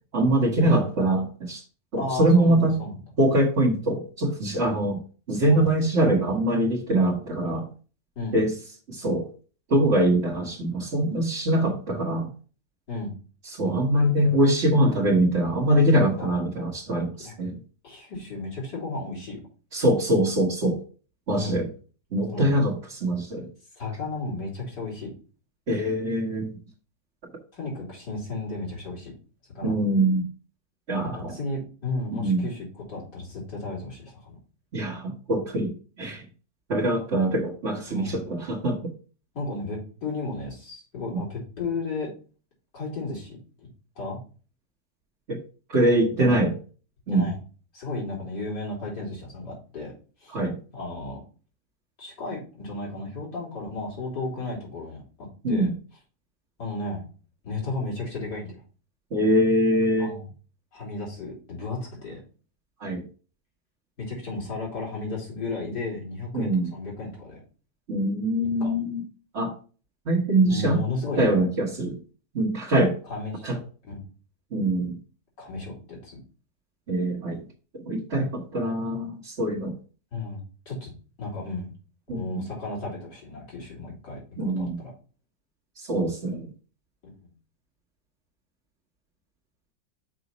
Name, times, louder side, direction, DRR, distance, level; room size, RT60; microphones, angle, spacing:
voice 1, 0.1-1.6 1.9-2.8 3.2-5.0 5.3-7.7 8.3-8.5 8.9-9.3 9.7-12.3 13.5-17.6 19.7-20.8 21.3-21.7 22.1-23.5 25.7-26.5 29.6-30.3 30.9-31.3 32.2-32.4 34.7-36.2 36.7-38.9 45.3-45.4 45.7-46.5 47.1-47.2 50.3-50.6 55.4-55.7 59.1-60.1 62.8-63.0 66.3-66.7 67.9-69.0 69.3-69.5 70.1-70.8 71.2-72.0 72.3-73.0 73.4-73.6 74.5-75.0 76.9-77.4 77.7-79.7 82.1-82.4 84.4-84.8 85.8-86.5, right 1 dB, 45° right, -2 dB, 1.5 m, -23 dB
voice 2, 2.0-3.0 5.5-5.7 8.2-8.4 12.9-13.1 16.2-16.3 17.2-17.3 17.8-19.4 21.3-21.6 22.3-22.5 23.8-25.1 27.5-29.1 29.6-29.7 31.0-34.4 37.9-38.2 39.3-42.1 42.7-43.7 44.0-44.2 46.2-46.4 47.1-47.4 47.7-49.9 50.2-50.4 50.7-51.2 52.0-55.0 55.5-55.7 56.6-57.0 57.4-58.6 60.0-60.3 60.7-62.2 64.0-67.4 68.4-68.8 70.4-71.4 73.1-73.5 73.8-74.0 75.4-76.2 80.1-80.9 81.2-81.7 82.1-84.9 87.2-87.3, left 3 dB, 75° left, -4 dB, 3.8 m, -34 dB
6.1 x 5.5 x 4.0 m, 0.37 s
omnidirectional pair, 1.8 m